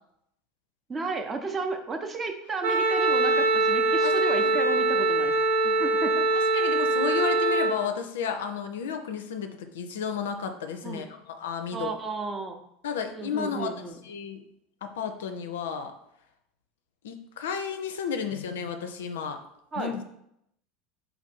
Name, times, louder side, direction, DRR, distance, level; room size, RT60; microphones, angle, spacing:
voice 1, 0.9-5.4 5.8-6.3 10.8-11.1 11.7-12.6 13.1-14.0 19.7-19.9, right 3 dB, 25° right, 5 dB, 0.7 m, -33 dB
Wind instrument woodwind instrument, 2.6-7.8, right 3 dB, 75° right, 0.7 m, -23 dB
voice 2, 6.5-11.9 12.8-13.7 14.0-14.4 14.8-15.9 17.0-19.4 19.8-20.0, left 7 dB, 70° left, 7 dB, 0.4 m, -32 dB
4.3 x 2.6 x 4.2 m, 0.76 s
figure-of-eight pair, 75°, 0 cm